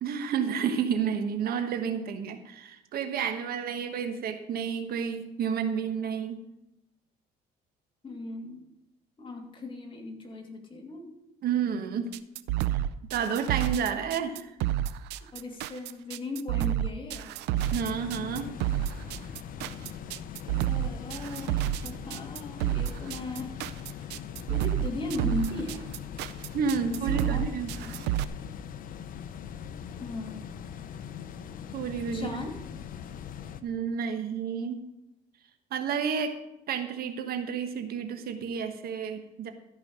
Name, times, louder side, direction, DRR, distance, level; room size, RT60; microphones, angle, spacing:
voice 1, 0.0-6.4 11.4-12.1 12.7-12.8 13.1-14.5 17.7-18.5 26.5-27.7 31.7-32.4 33.6-34.8 35.7-36.3 36.7-39.5, right 7 dB, 65° right, 8 dB, 1.3 m, -30 dB
voice 2, 8.0-8.6 9.2-11.2 15.2-17.4 20.4-23.6 24.5-25.9 27.0-27.5 27.8-27.9 30.0-30.4 32.1-32.5, left 2 dB, 30° left, 2 dB, 2.5 m, -37 dB
sound 1, 12.1-28.2, right 13 dB, 90° right, 0.5 m, -30 dB
sound 2, 17.5-33.6, left 8 dB, 55° left, 0.8 m, -41 dB
13.5 x 5.6 x 6.4 m, 0.88 s
cardioid pair, 110°, 17 cm